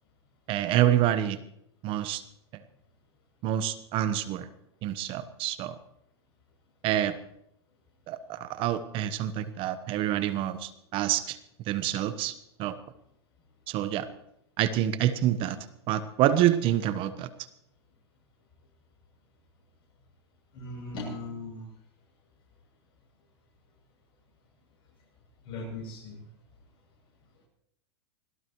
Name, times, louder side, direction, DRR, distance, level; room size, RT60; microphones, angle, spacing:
voice 1, 0.5-1.4 1.8-2.2 3.4-4.5 4.8-5.7 6.8-7.1 8.1-11.4 11.7-12.3 12.6-12.8 13.7-14.1 14.6-15.6 15.9-17.3, right 12 dB, 40° right, 12 dB, 1.1 m, -27 dB
voice 2, 20.5-21.7 25.4-26.2, left 2 dB, 40° left, -3 dB, 7.9 m, -38 dB
25.5 x 17.0 x 3.1 m, 0.77 s
hypercardioid pair, 120°, 14 cm